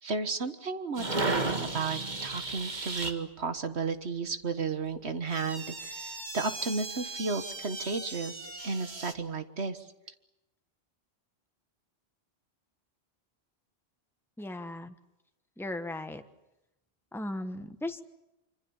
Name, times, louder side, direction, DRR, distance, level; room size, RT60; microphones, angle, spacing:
voice 1, 0.0-9.9, right 4 dB, 80° right, 10 dB, 1.8 m, -33 dB
sound 1, 1.0-3.1 5.3-9.1, right 3 dB, 45° right, 2.0 m, -35 dB
voice 2, 14.4-14.9 15.6-16.2 17.1-18.0, left 1 dB, ahead, 8 dB, 1.2 m, -37 dB
26.0 x 26.0 x 7.2 m, 0.92 s
omnidirectional pair, 1.1 m